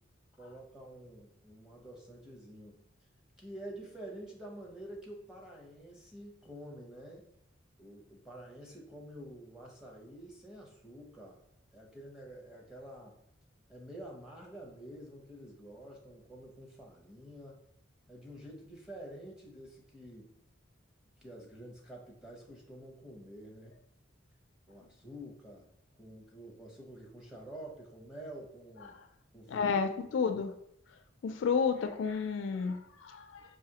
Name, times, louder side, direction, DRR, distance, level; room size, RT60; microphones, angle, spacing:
voice 1, 0.4-2.9 3.4-7.2 7.8-11.4 11.7-13.2 13.7-17.6 18.1-20.3 21.2-23.7 24.7-25.7 26.0-29.0 29.3-29.8 32.5-32.8, right 1 dB, 5° right, -2 dB, 0.7 m, -48 dB
voice 2, 29.5-30.5 31.2-33.6, left 5 dB, 70° left, 8 dB, 0.3 m, -31 dB
4.8 x 2.6 x 2.8 m, 0.76 s
head